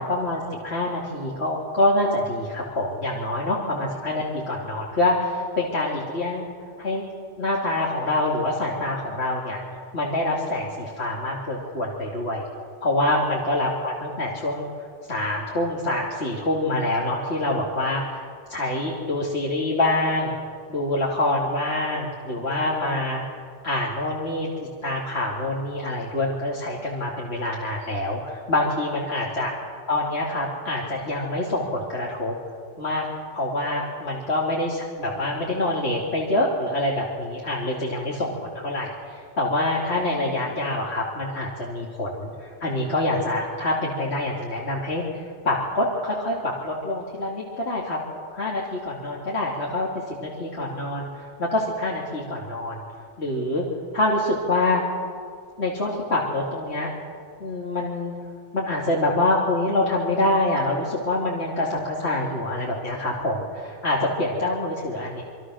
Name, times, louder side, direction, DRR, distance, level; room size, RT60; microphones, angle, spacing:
voice 1, 0.0-6.4 6.8-7.0 7.4-9.6 9.9-12.4 12.8-14.7 15.1-18.2 18.5-20.3 20.7-23.2 23.6-24.5 24.8-29.5 29.9-32.3 32.8-33.1 33.3-48.0 48.3-52.8 53.2-53.6 53.9-54.8 55.6-56.9 57.4-58.1 58.5-65.2, left 1 dB, 70° left, -4 dB, 3.1 m, -26 dB
27.0 x 24.5 x 6.4 m, 2.1 s
omnidirectional pair, 1.1 m